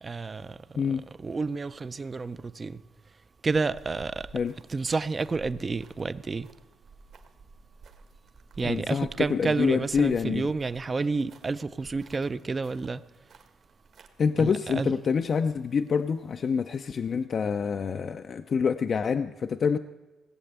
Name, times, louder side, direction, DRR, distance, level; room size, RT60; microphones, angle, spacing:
voice 1, 0.0-0.6 1.2-2.8 3.4-4.3 4.7-6.5 8.6-13.0 14.4-14.9, right 4 dB, 25° right, 0.4 m, -30 dB
gravel-walking, 3.6-14.1, right 4 dB, 60° right, 1.5 m, -52 dB
voice 2, 8.6-10.5 14.2-19.8, left 6 dB, 40° left, 0.4 m, -27 dB
18.0 x 7.7 x 8.0 m
cardioid pair, 125°, 0 cm